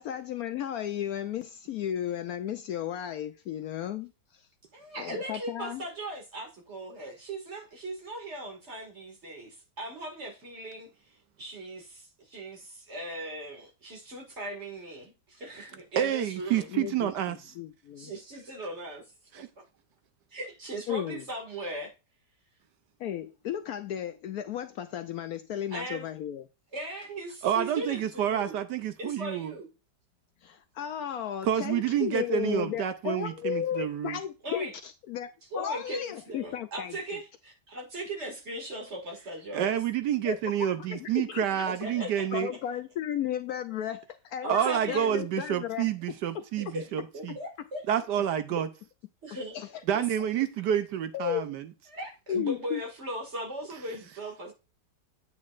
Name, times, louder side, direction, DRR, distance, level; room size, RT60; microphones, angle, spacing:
voice 1, 0.0-4.4 5.0-5.8 16.7-18.1 20.9-21.2 23.0-26.4 30.4-37.2 40.2-41.7 41.9-46.2 46.7-46.8 49.5-49.8 51.1-51.5 52.3-52.8, left 10 dB, 70° left, 0.9 m, -34 dB
voice 2, 4.7-10.9 11.4-16.7 18.0-19.6 20.3-21.9 25.7-26.1 26.7-28.5 29.0-29.7 34.4-34.7 35.5-39.8 41.8-42.4 44.4-45.3 46.7-46.8 47.1-47.8 49.2-49.6 49.9-50.0 51.9-54.5, right 1 dB, 40° right, 2.4 m, -39 dB
voice 3, 16.0-17.4 19.3-19.5 27.4-29.5 31.4-34.2 39.5-42.5 44.5-47.4 47.9-48.7 49.9-51.7, right 10 dB, 75° right, 1.3 m, -28 dB
8.5 x 8.4 x 2.5 m
omnidirectional pair, 1.9 m